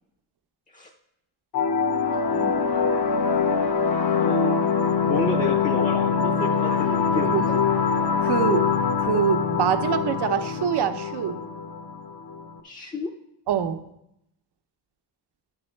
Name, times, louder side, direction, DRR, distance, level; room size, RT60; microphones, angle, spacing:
sound 1, 1.5-12.5, left 5 dB, 60° left, 0.8 m, -24 dB
voice 1, 2.3-3.0 4.1-4.8 5.0-7.6 12.6-13.1, left 3 dB, 20° left, 2 dB, 0.5 m, -32 dB
voice 2, 8.2-11.4 13.5-13.8, right 8 dB, 65° right, 9 dB, 0.7 m, -25 dB
11.0 x 6.2 x 4.4 m, 0.82 s
wide cardioid pair, 150°, 43 cm